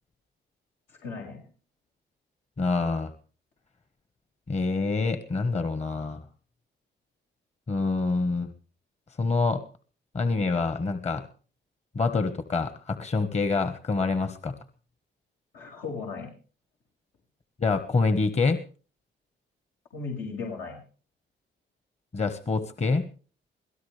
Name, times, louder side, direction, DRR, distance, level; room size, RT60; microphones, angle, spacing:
voice 1, 0.9-1.4 15.5-16.3 19.9-20.8, left 4 dB, 85° left, -1 dB, 6.1 m, -36 dB
voice 2, 2.6-3.1 4.5-6.2 7.7-8.5 9.2-9.6 10.1-11.3 11.9-14.5 17.6-18.6 22.1-23.1, left 3 dB, 35° left, 9 dB, 1.4 m, -26 dB
24.5 x 17.5 x 3.4 m, 0.40 s
cardioid pair, 90°, 20 cm